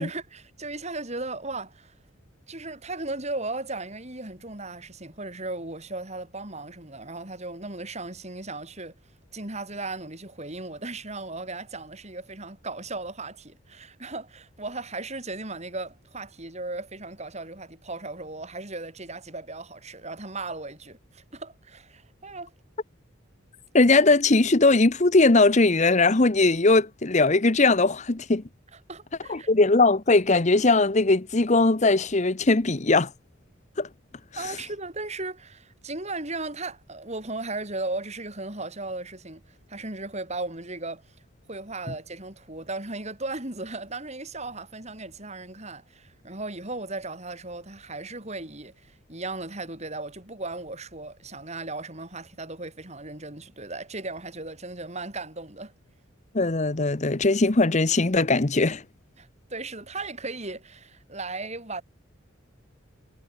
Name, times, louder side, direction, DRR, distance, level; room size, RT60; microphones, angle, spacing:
voice 1, 0.0-1.9 2.5-9.0 9.3-22.5 28.9-29.5 34.4-41.1 41.5-55.7 59.2-61.8, right 2 dB, 35° right, 5.7 m, -36 dB
voice 2, 23.7-28.4 29.3-33.1 33.8-33.9 56.3-58.8, left 3 dB, 35° left, 0.9 m, -20 dB
head